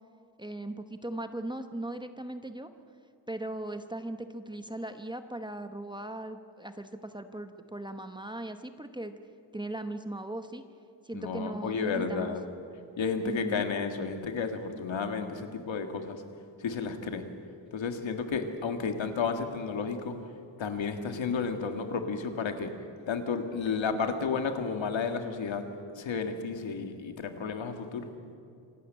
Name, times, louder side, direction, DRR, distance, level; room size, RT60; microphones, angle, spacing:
voice 1, 0.4-2.7 3.3-9.2 9.5-10.6 11.0-12.4 13.2-13.7, right 1 dB, 10° right, 8 dB, 0.9 m, -38 dB
voice 2, 11.1-12.4 13.0-16.2 16.6-17.3 17.7-20.2 20.6-22.7 23.1-25.7 26.0-28.1, left 5 dB, 75° left, 6 dB, 1.9 m, -32 dB
26.5 x 12.0 x 8.8 m, 2.7 s
wide cardioid pair, 130°, 46 cm